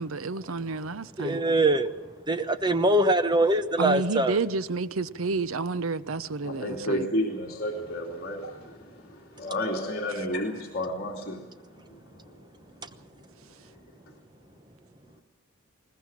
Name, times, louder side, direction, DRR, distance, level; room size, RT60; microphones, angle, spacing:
voice 1, 0.0-1.4 3.8-7.1, right 3 dB, 75° right, 0.8 m, -30 dB
voice 2, 1.2-1.9 2.3-4.4, right 1 dB, 20° right, 1.0 m, -23 dB
voice 3, 6.4-11.4, left 1 dB, 45° left, 2.8 m, -31 dB
21.5 x 19.0 x 7.4 m
head